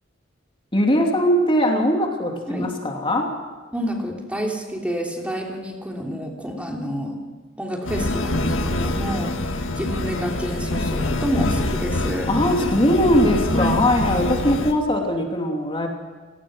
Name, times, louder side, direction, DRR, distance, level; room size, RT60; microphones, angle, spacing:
voice 1, 0.7-3.3 12.3-15.9, equal, 25° left, 1 dB, 2.9 m, -20 dB
voice 2, 3.7-7.2 7.6-12.3 12.6-12.7 13.0-13.1 13.5-13.8, equal, 5° right, 0 dB, 3.0 m, -28 dB
sound 1, 7.8-14.7, left 2 dB, 75° left, 2.0 m, -25 dB
30.0 x 18.5 x 6.4 m, 1.4 s
head